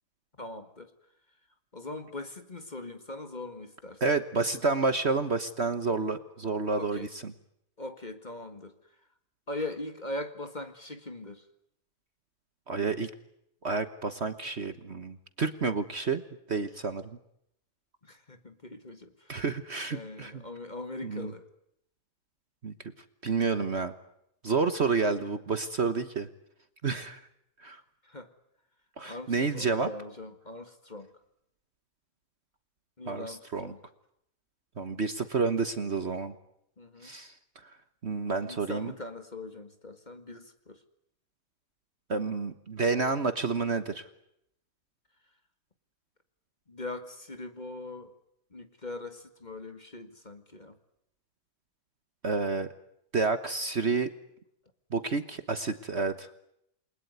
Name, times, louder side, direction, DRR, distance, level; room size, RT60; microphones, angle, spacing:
voice 1, 0.4-0.9 1.7-4.0 6.7-7.1 7.8-8.7 9.5-11.4 18.0-19.1 19.9-21.5 28.0-28.3 29.1-31.1 33.0-33.8 34.9-35.0 36.8-37.1 38.4-40.8 46.7-48.1 48.5-50.8, left 2 dB, 25° left, 8 dB, 1.9 m, -41 dB
voice 2, 4.0-7.3 12.7-13.1 13.6-16.2 16.5-17.2 19.3-20.4 21.0-21.3 22.6-22.7 23.2-23.9 24.4-26.3 26.8-27.2 27.6-27.8 29.0-29.9 33.1-33.7 34.8-36.3 37.0-37.3 38.0-38.9 42.1-44.1 52.2-52.7 53.1-54.1 54.9-56.3, right 4 dB, 45° right, 10 dB, 1.4 m, -29 dB
29.0 x 21.5 x 9.5 m, 0.78 s
omnidirectional pair, 1.8 m